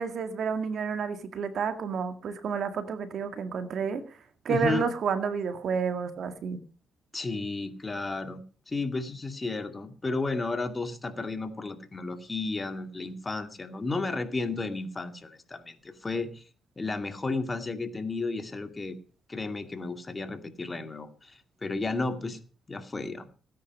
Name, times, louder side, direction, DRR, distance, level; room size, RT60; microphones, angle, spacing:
voice 1, 0.0-4.0 4.5-6.6, right 6 dB, 65° right, 9 dB, 1.9 m, -30 dB
voice 2, 4.5-4.9 7.1-16.4 16.8-19.0 19.3-22.4 22.7-23.3, left 3 dB, 25° left, 7 dB, 2.2 m, -33 dB
17.0 x 10.0 x 5.3 m, 0.39 s
cardioid pair, 75°, 0 cm